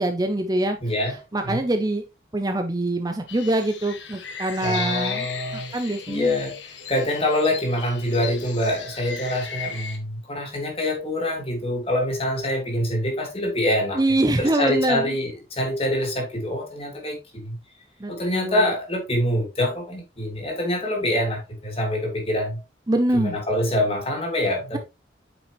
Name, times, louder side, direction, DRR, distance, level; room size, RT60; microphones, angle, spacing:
voice 1, 0.0-0.8 1.3-2.0 2.3-5.3 5.5-6.4 13.9-15.1 18.0-18.6 22.9-23.4, right 1 dB, 20° right, 0.6 m, -24 dB
voice 2, 0.8-1.2 1.4-1.6 4.6-14.0 14.4-17.6 18.1-22.6 23.1-24.8, left 1 dB, 30° left, 2.5 m, -25 dB
sound 1, 3.3-10.0, left 6 dB, 80° left, 1.4 m, -36 dB
8.5 x 5.4 x 3.0 m
head